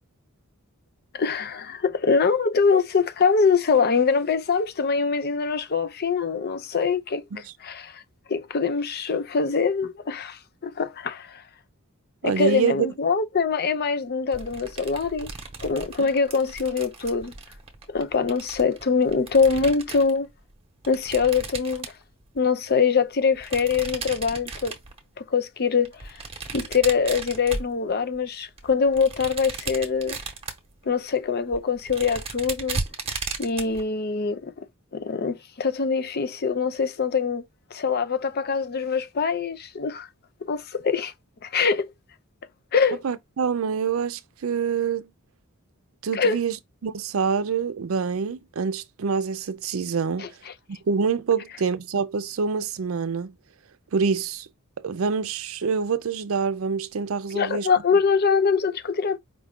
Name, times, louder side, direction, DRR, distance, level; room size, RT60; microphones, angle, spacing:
voice 1, 1.1-7.2 7.6-8.0 8.3-11.4 12.2-15.3 15.6-17.3 17.9-20.3 20.9-21.9 22.4-24.7 25.2-26.2 26.5-30.2 30.9-32.8 33.4-34.7 34.9-37.4 37.7-40.1 40.5-41.1 41.4-41.9 42.7-43.0 46.1-46.4 50.2-50.3 57.3-59.2, left 5 dB, 45° left, 0.6 m, -23 dB
voice 2, 12.2-12.9 16.0-16.1 43.0-45.1 46.0-46.6 46.8-50.3 50.7-53.3 53.9-54.5 54.8-57.7, right 5 dB, 70° right, 0.5 m, -26 dB
sound 1, 14.3-20.2 20.8-22.4 23.3-25.1 25.8-28.2 28.6-30.7 31.2-31.3 31.5-33.8, right 4 dB, 30° right, 1.0 m, -36 dB
5.1 x 2.4 x 3.6 m
head